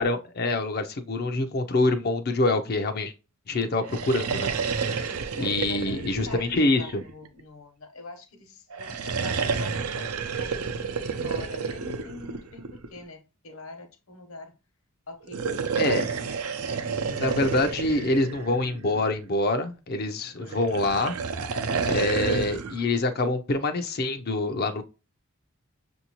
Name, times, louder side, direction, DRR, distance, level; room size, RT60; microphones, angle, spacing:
voice 1, 0.0-3.1 3.5-4.9 5.4-6.9 15.8-16.0 17.1-21.1 21.8-24.8, left 2 dB, 45° left, 0.5 m, -26 dB
sound 1, 3.8-7.4 8.7-13.0 15.2-19.2 20.5-22.8, right 5 dB, 80° right, 0.6 m, -30 dB
voice 2, 4.9-14.6 15.1-16.0 20.3-20.6, left 2 dB, 65° left, 1.0 m, -44 dB
6.2 x 2.6 x 3.0 m
head